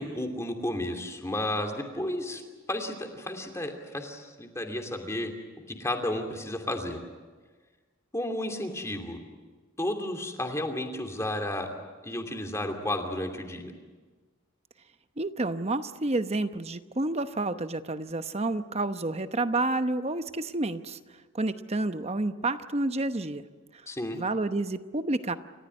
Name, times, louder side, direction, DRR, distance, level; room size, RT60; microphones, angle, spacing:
voice 1, 0.0-2.4 2.7-5.3 5.7-7.0 8.1-9.2 9.8-11.7 12.0-13.7 23.9-24.2, left 1 dB, 15° left, 4 dB, 2.8 m, -32 dB
voice 2, 15.2-21.0 21.3-23.5 23.7-23.8 24.1-25.4, right 2 dB, 30° right, 10 dB, 0.9 m, -29 dB
29.0 x 15.0 x 9.7 m, 1.4 s
head